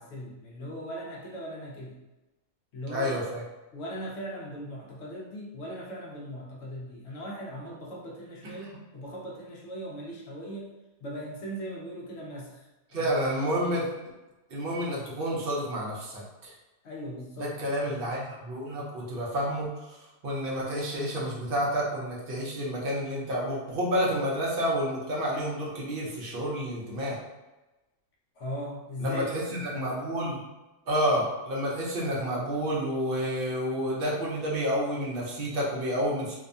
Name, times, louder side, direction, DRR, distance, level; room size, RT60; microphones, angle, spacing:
voice 1, 0.0-2.0 2.7-3.2 3.7-10.7 11.0-12.6 12.9-13.1 16.8-17.6 28.4-29.9, equal, 65° left, -3 dB, 0.7 m, -39 dB
voice 2, 2.9-3.4 8.4-8.6 12.9-13.9 14.5-16.5 17.4-19.7 20.2-27.2 29.0-30.4 30.9-36.3, equal, 55° right, -4 dB, 0.7 m, -29 dB
2.7 x 2.2 x 2.5 m, 1.1 s
omnidirectional pair, 1.5 m